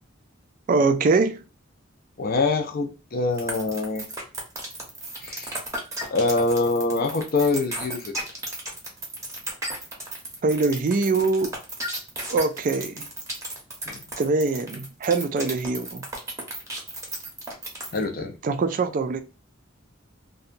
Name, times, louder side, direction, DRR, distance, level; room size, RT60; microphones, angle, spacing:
voice 1, 0.7-1.4 10.4-11.5 12.3-13.1 14.2-16.0 18.4-19.2, right 3 dB, 40° right, 0.3 m, -23 dB
voice 2, 2.2-4.1 5.2-5.6 6.1-8.1 13.9-14.0 17.9-18.3, left 3 dB, 45° left, 0.5 m, -24 dB
sound 1, 3.4-18.0, right 2 dB, 15° right, 0.8 m, -34 dB
2.7 x 2.2 x 2.5 m
head